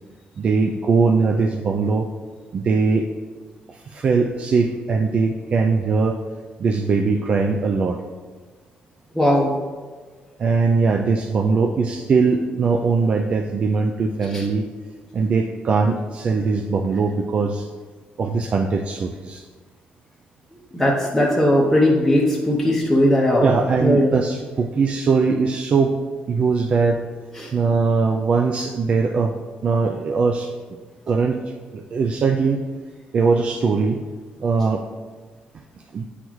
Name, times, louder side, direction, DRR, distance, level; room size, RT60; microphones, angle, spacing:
voice 1, 0.4-2.1 2.5-3.1 3.7-6.2 6.6-8.0 10.4-14.7 15.1-17.7 18.2-19.4 23.4-26.0 26.3-27.0 27.5-29.4 29.6-30.8 31.1-32.7 33.1-34.0 34.4-34.8 35.9-36.1, right 4 dB, 40° right, 4 dB, 0.3 m, -21 dB
voice 2, 9.2-9.5 14.3-14.4 20.7-23.5 23.8-24.1 27.4-27.5, left 1 dB, ahead, -4 dB, 0.7 m, -18 dB
9.1 x 3.9 x 3.1 m, 1.4 s
cardioid pair, 140°, 3 cm